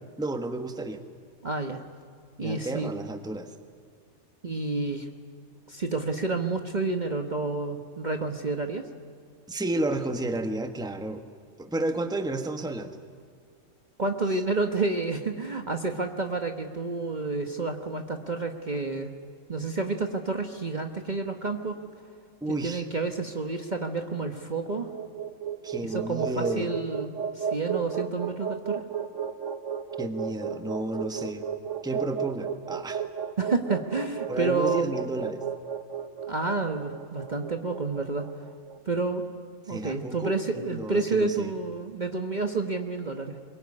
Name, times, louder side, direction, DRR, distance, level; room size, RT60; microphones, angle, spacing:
voice 1, 0.2-1.0 2.4-3.5 9.5-11.2 11.6-13.0 22.4-22.8 25.6-26.7 30.0-31.5 31.8-33.0 34.3-35.4 39.7-41.5, right 2 dB, 5° right, 6 dB, 1.3 m, -32 dB
voice 2, 1.4-1.8 2.4-2.9 4.4-5.1 5.7-8.9 14.0-19.1 19.5-21.8 22.5-24.9 25.8-28.8 33.4-34.9 36.3-38.3 38.9-39.2 39.7-43.4, right 3 dB, 35° right, 5 dB, 1.3 m, -29 dB
sound 1, 24.7-38.8, right 7 dB, 60° right, 1.4 m, -34 dB
22.5 x 22.5 x 9.7 m, 2.1 s
omnidirectional pair, 1.5 m